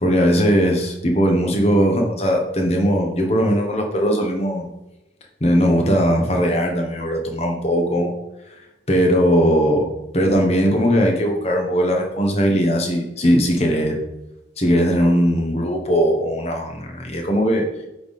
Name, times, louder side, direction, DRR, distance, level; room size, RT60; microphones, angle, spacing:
voice 1, 0.0-4.7 5.4-8.1 8.9-9.9 10.1-14.0 14.6-17.6, equal, 35° left, 2 dB, 1.1 m, -19 dB
8.5 x 3.6 x 4.2 m, 0.93 s
head